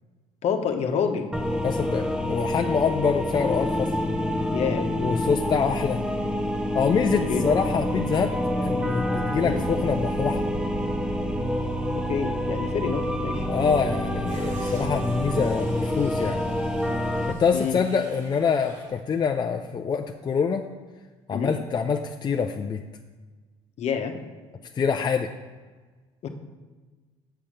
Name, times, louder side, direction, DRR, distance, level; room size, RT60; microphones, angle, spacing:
voice 1, 0.4-1.3 4.5-4.9 7.1-7.5 9.4-9.6 11.9-13.5 17.5-17.8 21.3-21.5 23.8-24.1 26.2-26.3, left 7 dB, 55° left, 6 dB, 1.1 m, -28 dB
sound 1, 1.3-17.3, equal, 5° right, 0.9 m, -27 dB
voice 2, 1.6-3.9 5.0-6.0 6.7-8.3 8.6-10.4 13.5-16.4 17.3-20.6 21.3-22.8 24.7-25.3, left 6 dB, 35° left, 4 dB, 0.5 m, -25 dB
sound 2, 14.2-19.0 19.4-19.5, right 2 dB, 70° right, 2.7 m, -47 dB
7.1 x 5.7 x 6.5 m, 1.3 s
supercardioid pair, 80°, 13 cm